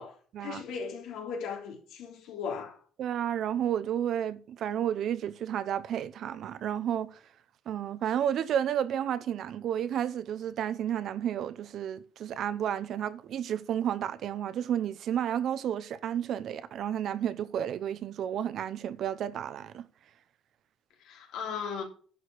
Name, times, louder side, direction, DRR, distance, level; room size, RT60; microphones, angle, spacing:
voice 1, 0.0-2.8 21.0-21.8, left 6 dB, 90° left, 3.1 m, -37 dB
voice 2, 3.0-7.2 7.7-19.9, right 9 dB, 60° right, 0.7 m, -31 dB
11.0 x 5.0 x 6.3 m
cardioid pair, 145°, 0 cm